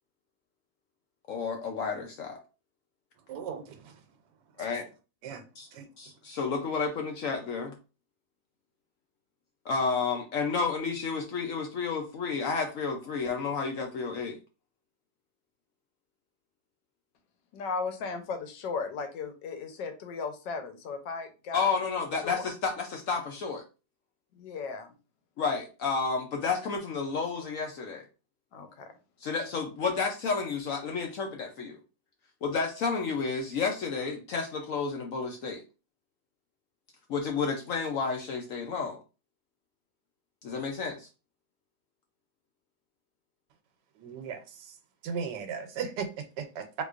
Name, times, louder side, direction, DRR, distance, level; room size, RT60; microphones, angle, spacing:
voice 1, 1.3-2.4 4.6-4.9 5.6-5.7 6.0-7.8 9.6-14.4 21.5-23.6 25.4-28.1 29.2-31.8 32.4-35.6 37.1-39.0 40.4-41.1, left 5 dB, 70° left, 0.8 m, -31 dB
voice 2, 3.3-4.0 5.2-5.4 5.7-5.9 44.0-44.7 45.0-46.8, right 6 dB, 80° right, 1.3 m, -37 dB
voice 3, 17.5-21.6 22.2-22.4 24.4-24.9 28.5-28.9, left 4 dB, 85° left, 1.3 m, -36 dB
3.8 x 2.9 x 2.4 m
omnidirectional pair, 1.9 m